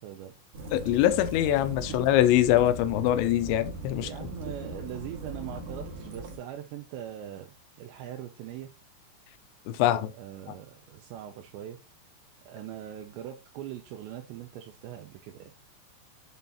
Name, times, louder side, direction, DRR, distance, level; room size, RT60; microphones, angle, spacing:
voice 1, 0.0-0.4 1.9-2.0 4.0-7.5 7.8-8.7 9.9-11.8 12.5-15.5, right 11 dB, 80° right, 3.0 m, -41 dB
Waves surf / Splash splatter / Trickle dribble, 0.5-6.4, right 1 dB, 60° right, 3.1 m, -39 dB
voice 2, 0.7-4.1 9.7-10.1 10.5-10.6, left 13 dB, 85° left, 3.0 m, -23 dB
8.0 x 4.0 x 4.1 m
omnidirectional pair, 5.1 m